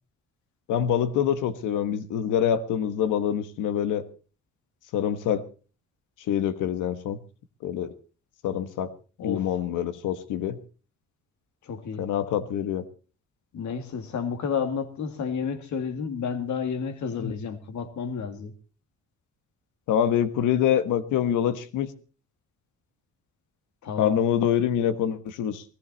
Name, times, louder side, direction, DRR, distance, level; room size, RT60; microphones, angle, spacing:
voice 1, 0.7-4.0 4.9-5.5 6.3-7.2 7.6-7.9 8.4-8.9 9.2-10.6 12.0-12.8 17.2-17.3 19.9-21.9 24.0-25.6, left 9 dB, 85° left, 1.4 m, -25 dB
voice 2, 11.6-12.1 13.5-18.5 23.8-24.2, left 6 dB, 70° left, 2.2 m, -31 dB
18.0 x 14.5 x 4.1 m
cardioid pair, 90°, 30 cm